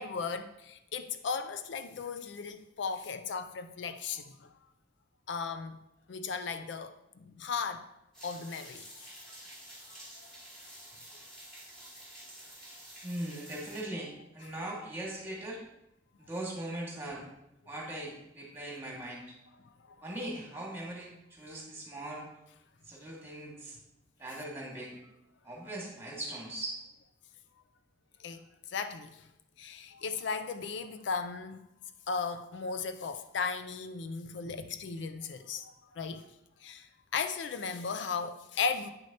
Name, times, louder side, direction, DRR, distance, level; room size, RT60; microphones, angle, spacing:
voice 1, 0.0-4.5 5.3-5.8 6.1-7.9 8.2-9.1 28.2-29.3 29.6-31.7 32.1-36.3 36.6-38.9, left 5 dB, 65° left, 0.4 m, -36 dB
sound 1, 8.1-13.8, right 1 dB, 5° left, 2.6 m, -50 dB
voice 2, 13.0-15.6 16.2-17.2 17.7-19.3 20.0-22.3 22.8-23.8 24.2-25.0 25.4-26.8, right 1 dB, 10° right, 1.8 m, -40 dB
8.6 x 6.2 x 2.8 m
head